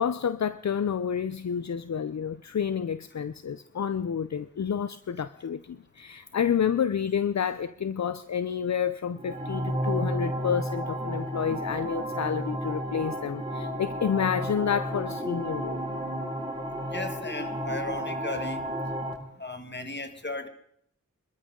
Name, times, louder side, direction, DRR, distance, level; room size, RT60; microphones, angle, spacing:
voice 1, 0.0-15.8, left 7 dB, 60° left, 0.6 m, -29 dB
sound 1, 9.1-19.1, equal, 15° right, 5.6 m, -32 dB
voice 2, 16.9-18.6 19.4-20.5, left 2 dB, 35° left, 1.9 m, -35 dB
26.0 x 13.5 x 3.8 m
wide cardioid pair, 50°, 31 cm